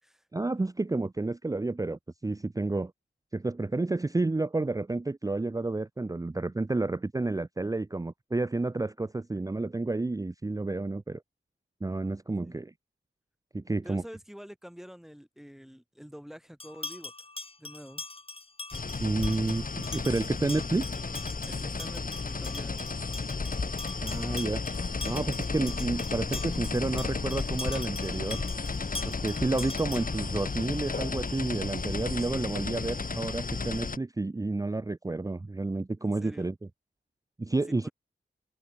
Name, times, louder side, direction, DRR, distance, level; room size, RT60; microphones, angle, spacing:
voice 1, 0.3-2.9 3.3-11.2 11.8-12.7 13.5-14.0 19.0-20.8 24.0-24.6 25.0-28.4 29.1-36.5 37.4-37.9, right 2 dB, 15° right, 0.5 m, -30 dB
voice 2, 13.8-17.1 17.6-18.0 21.4-22.9 32.3-32.6 36.0-36.5 37.7-37.9, equal, ahead, 4.0 m, -47 dB
sound 1, 16.6-30.3, left 3 dB, 30° left, 1.2 m, -43 dB
sound 2, 18.7-34.0, left 4 dB, 45° left, 2.1 m, -33 dB
wide cardioid pair, 85°, 20 cm